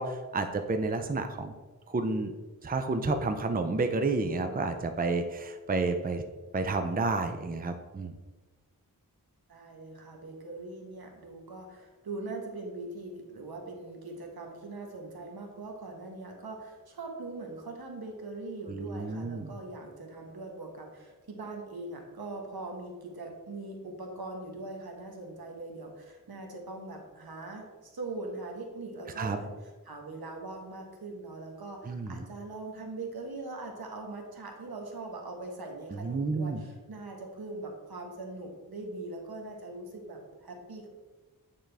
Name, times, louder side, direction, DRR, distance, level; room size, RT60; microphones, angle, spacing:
voice 1, 0.0-1.5 1.9-2.3 2.6-6.2 6.5-8.1 18.7-19.5 29.2-29.4 31.9-32.3 35.9-36.6, right 3 dB, 25° right, 6 dB, 0.5 m, -30 dB
voice 2, 9.5-40.9, right 2 dB, 80° right, 1 dB, 1.2 m, -41 dB
8.9 x 3.7 x 3.4 m, 1.3 s
wide cardioid pair, 60°, 36 cm